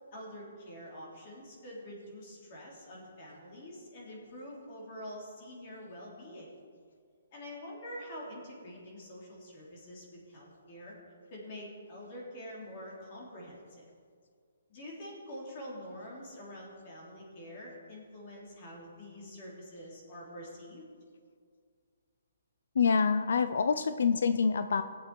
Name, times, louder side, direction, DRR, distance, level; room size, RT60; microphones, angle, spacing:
voice 1, 0.1-6.5 7.3-10.9 11.3-13.9 14.7-20.8, equal, 30° left, -4 dB, 3.0 m, -46 dB
voice 2, 22.8-24.8, left 5 dB, 65° left, 11 dB, 0.5 m, -26 dB
19.0 x 8.2 x 4.7 m, 2.1 s
hypercardioid pair, 175°, 0 cm